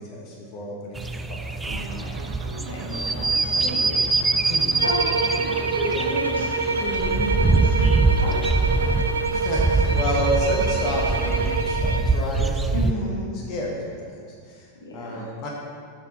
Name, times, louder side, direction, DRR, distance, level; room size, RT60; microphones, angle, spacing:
voice 1, 0.0-1.6 4.4-4.8 9.3-13.2 13.5-15.5, equal, 40° left, -2 dB, 1.4 m, -30 dB
sound 1, 1.0-12.9, right 3 dB, 10° right, 0.4 m, -24 dB
voice 2, 1.6-2.1 2.6-4.0 4.2-4.4 4.8-8.9 12.7-13.3 14.8-15.3, equal, 70° left, -4 dB, 1.6 m, -32 dB
sound 2, 1.6-11.6, right 4 dB, 45° right, 0.9 m, -40 dB
sound 3, 4.8-12.1, right 4 dB, 75° right, 0.5 m, -26 dB
7.8 x 6.0 x 4.6 m, 2.1 s
figure-of-eight pair, 90°, 0 cm